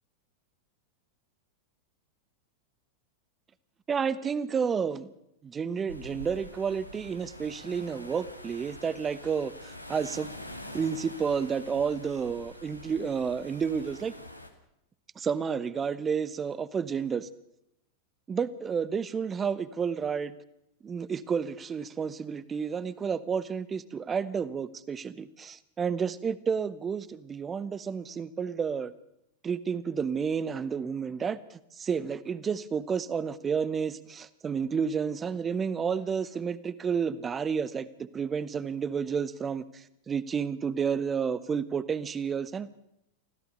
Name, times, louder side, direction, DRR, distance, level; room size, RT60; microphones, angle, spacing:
voice 1, 3.9-5.1 5.4-10.3 10.7-14.1 15.2-17.3 18.3-20.3 20.8-28.9 29.4-42.7, right 6 dB, 20° right, 17 dB, 1.1 m, -31 dB
sound 1, 5.9-14.5, equal, 90° left, 2.4 m, -45 dB
25.0 x 16.0 x 6.7 m, 0.81 s
figure-of-eight pair, 90°, 0 cm